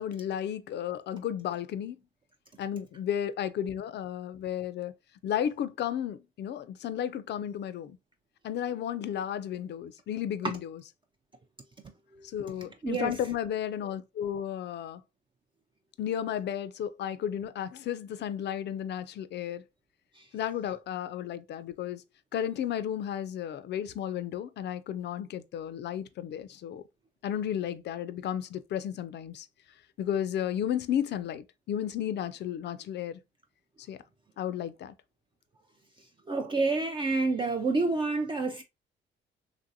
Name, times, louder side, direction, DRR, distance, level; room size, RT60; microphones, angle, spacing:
voice 1, 0.0-2.0 2.6-4.9 5.2-8.0 8.4-10.8 12.2-15.0 16.0-19.6 20.3-22.0 22.3-26.8 27.2-29.5 30.0-33.2 33.9-34.0 34.4-34.9, left 10 dB, 60° left, 0.4 m, -33 dB
voice 2, 12.8-13.2 20.2-20.3 36.3-38.6, right 3 dB, 25° right, 0.4 m, -28 dB
3.0 x 2.6 x 2.6 m
cardioid pair, 90°, 20 cm